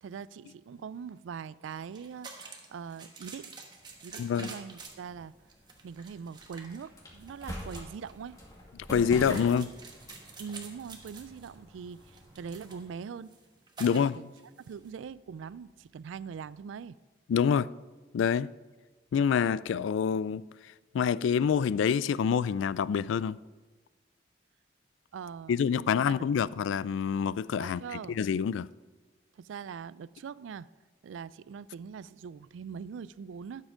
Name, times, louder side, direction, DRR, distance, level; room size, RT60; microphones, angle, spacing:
voice 1, 0.0-3.6 4.0-5.3 5.8-8.4 9.1-9.5 10.4-13.3 13.8-14.3 14.7-17.0 25.1-25.6 25.9-26.2 27.6-28.2 29.4-30.7 31.0-33.6, right 6 dB, 90° right, 0.3 m, -42 dB
sound 1, 1.7-14.9, right 4 dB, 25° right, 1.2 m, -49 dB
sound 2, 3.8-12.8, equal, 20° left, 1.9 m, -46 dB
voice 2, 4.2-4.5 8.9-9.7 13.8-14.2 17.3-17.7 18.1-18.5 19.1-20.4 20.9-23.4 25.5-27.8 28.1-28.7, left 7 dB, 85° left, 0.3 m, -26 dB
12.5 x 7.5 x 5.0 m
head